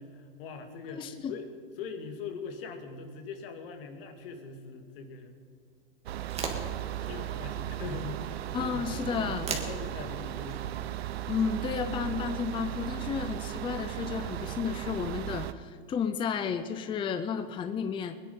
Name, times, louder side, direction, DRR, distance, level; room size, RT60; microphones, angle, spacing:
voice 1, 0.0-1.5 1.8-5.3 6.4-10.6, left 5 dB, 65° left, 6 dB, 2.3 m, -42 dB
voice 2, 0.9-1.3 8.5-9.5 11.3-18.2, left 6 dB, 15° left, 9 dB, 0.6 m, -32 dB
sound 1, 6.1-12.5, right 4 dB, 20° right, 2.0 m, -43 dB
sound 2, 6.1-15.5, right 13 dB, 80° right, 0.8 m, -36 dB
21.0 x 10.5 x 5.5 m, 2.3 s
supercardioid pair, 130°, 30 cm